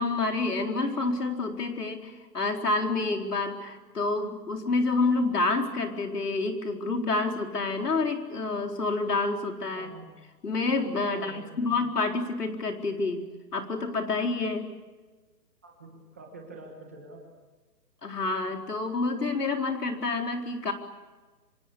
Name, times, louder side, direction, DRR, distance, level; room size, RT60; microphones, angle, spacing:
voice 1, 0.0-9.9 10.4-13.2 13.5-14.7 18.0-20.7, left 3 dB, 65° left, 3 dB, 4.4 m, -28 dB
voice 2, 9.7-10.1 11.1-11.8 15.6-17.2, right 2 dB, 10° right, 0 dB, 1.4 m, -46 dB
26.5 x 26.5 x 8.4 m, 1.3 s
hypercardioid pair, 180°, 50 cm